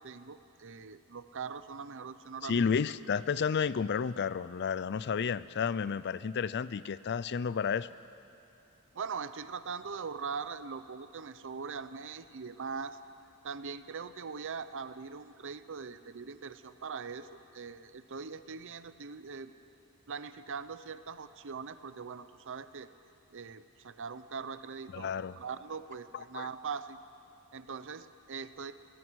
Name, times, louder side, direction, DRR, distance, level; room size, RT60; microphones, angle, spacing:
voice 1, 0.0-2.7 8.9-13.0 13.4-19.5 20.1-22.9 23.3-27.0 27.5-28.7, right 5 dB, 60° right, 13 dB, 0.7 m, -41 dB
voice 2, 2.4-7.9 24.9-25.3 26.3-26.5, left 6 dB, 50° left, 17 dB, 0.4 m, -31 dB
23.5 x 18.5 x 6.4 m, 2.7 s
head